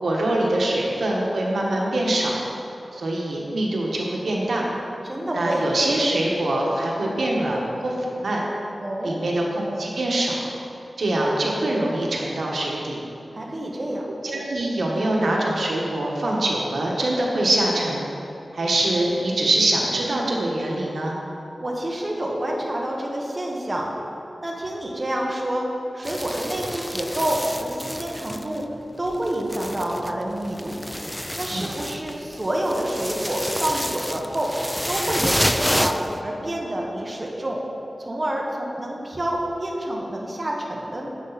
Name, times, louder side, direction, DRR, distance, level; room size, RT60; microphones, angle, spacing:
voice 1, 0.0-2.3 2.9-4.7 5.3-8.4 9.0-10.4 11.0-13.0 14.2-18.1 18.5-21.1 31.5-31.7, right 1 dB, 80° right, -2 dB, 1.4 m, -24 dB
voice 2, 5.0-5.6 8.8-9.2 13.3-14.0 21.6-23.9 24.4-25.7 25.9-28.6 29.0-30.8 31.3-34.5 34.9-37.6 38.0-41.1, right 1 dB, 30° right, -2 dB, 1.2 m, -28 dB
sound 1, 26.0-28.8 29.0-36.2, equal, 5° left, 0.3 m, -29 dB
10.0 x 7.9 x 4.1 m, 2.9 s
wide cardioid pair, 95°, 0 cm